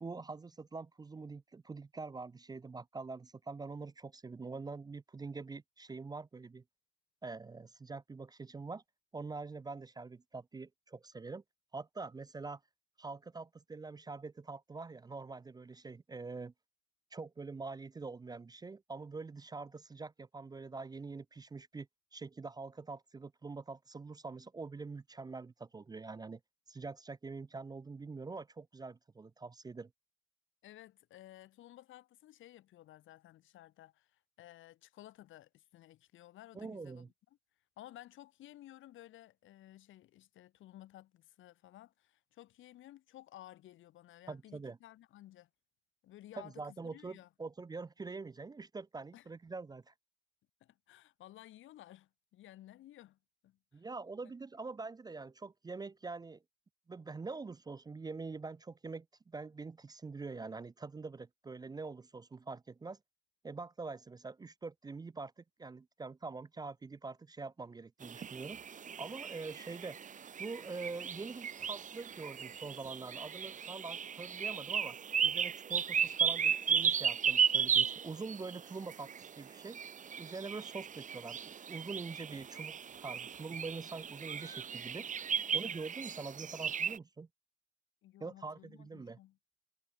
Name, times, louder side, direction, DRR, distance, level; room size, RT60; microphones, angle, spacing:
voice 1, 0.0-6.6 7.2-8.8 9.1-11.4 11.7-12.6 13.0-16.5 17.1-26.4 26.7-29.9 36.5-37.1 44.3-44.8 46.4-49.9 53.7-56.4 56.9-63.0 63.4-68.6 69.0-70.0 70.4-75.0 75.2-79.8 80.2-85.1 85.5-87.3 88.2-89.2, right 4 dB, 20° right, 0.4 m, -45 dB
voice 2, 30.6-37.1 37.8-45.5 46.0-47.3 49.1-49.3 50.6-53.8 54.2-54.3 85.4-85.6 88.0-89.4, left 14 dB, 80° left, 1.7 m, -56 dB
sound 1, 68.0-87.0, right 7 dB, 40° right, 0.8 m, -35 dB
cardioid pair, 90°, 20 cm